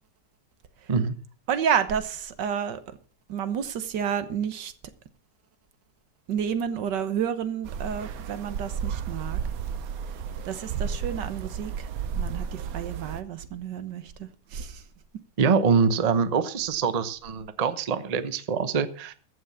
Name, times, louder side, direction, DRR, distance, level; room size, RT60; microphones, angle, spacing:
voice 1, 1.5-2.8 3.3-4.7 6.3-9.4 10.4-11.9 12.1-14.8, right 8 dB, 80° right, 1.7 m, -30 dB
sound 1, 7.6-13.2, right 7 dB, 65° right, 1.1 m, -33 dB
voice 2, 15.4-19.1, right 5 dB, 35° right, 0.6 m, -24 dB
14.5 x 6.2 x 7.0 m
omnidirectional pair, 1.9 m